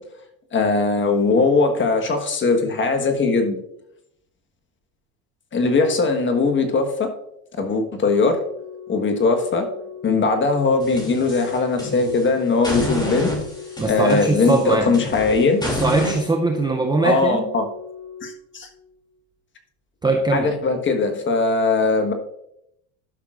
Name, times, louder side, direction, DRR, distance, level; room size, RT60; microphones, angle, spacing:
voice 1, 0.5-3.6 5.5-7.1 7.6-8.4 8.9-9.7 10.0-13.3 13.9-15.6 17.0-17.7 18.2-18.7 20.3-22.1, left 3 dB, 25° left, 5 dB, 1.3 m, -20 dB
Organ, 8.2-19.1 20.2-20.4, left 7 dB, 25° right, 2.6 m, -39 dB
sound 1, 10.8-12.2 12.6-16.2, equal, 10° left, 2.5 m, -29 dB
voice 2, 13.8-14.9 15.6-17.5 20.0-20.5, right 3 dB, 10° right, 3 dB, 0.5 m, -21 dB
12.0 x 5.7 x 2.4 m, 0.76 s
supercardioid pair, 100°, 42 cm